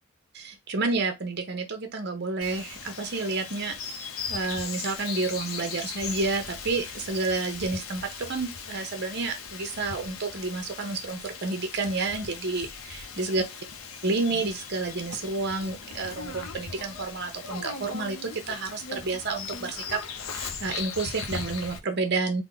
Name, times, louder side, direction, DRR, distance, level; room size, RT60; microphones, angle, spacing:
voice 1, 0.3-3.8 4.3-13.4 14.0-20.0 20.3-22.4, right 3 dB, 50° right, 0.8 m, -30 dB
Bird vocalization bird call bird song, 2.4-21.8, left 5 dB, 70° left, 0.6 m, -39 dB
3.5 x 2.1 x 3.8 m
head